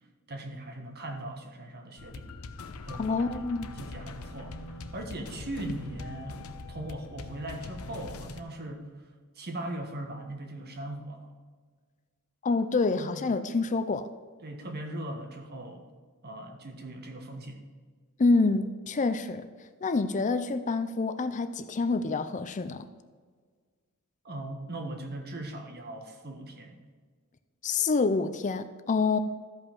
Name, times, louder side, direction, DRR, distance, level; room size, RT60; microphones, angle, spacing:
voice 1, 0.3-2.3 2.9-3.3 3.8-6.4 6.7-8.9 9.4-11.3 13.0-13.2 14.4-15.9 16.2-17.6 24.2-26.8, right 1 dB, 50° right, 1.4 m, -39 dB
sound 1, 2.0-8.4, left 3 dB, 85° left, 0.7 m, -42 dB
voice 2, 3.0-3.7 12.4-14.1 18.2-19.5 19.8-22.9 27.6-29.2, left 3 dB, 35° left, 0.5 m, -27 dB
13.5 x 5.5 x 5.4 m
head